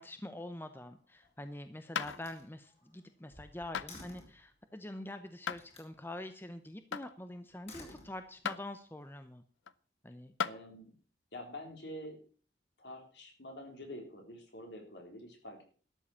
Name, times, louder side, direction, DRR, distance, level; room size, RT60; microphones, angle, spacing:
voice 1, 0.0-9.4 10.0-10.3, left 1 dB, 10° left, 9 dB, 0.7 m, -45 dB
Slam, 0.9-1.5 2.0-4.5 5.5-5.9 7.4-8.6, left 2 dB, 35° left, 3.8 m, -54 dB
sound 1, 1.9-2.2 3.7-3.9 5.5-5.6 6.9-7.1 8.4-8.6 9.7-9.8 10.4-10.6 12.0-12.1, left 7 dB, 85° left, 0.6 m, -35 dB
voice 2, 10.4-10.9 11.3-12.2 12.8-15.7, left 1 dB, 65° left, 3 dB, 3.9 m, -47 dB
13.0 x 7.6 x 7.1 m, 0.42 s
head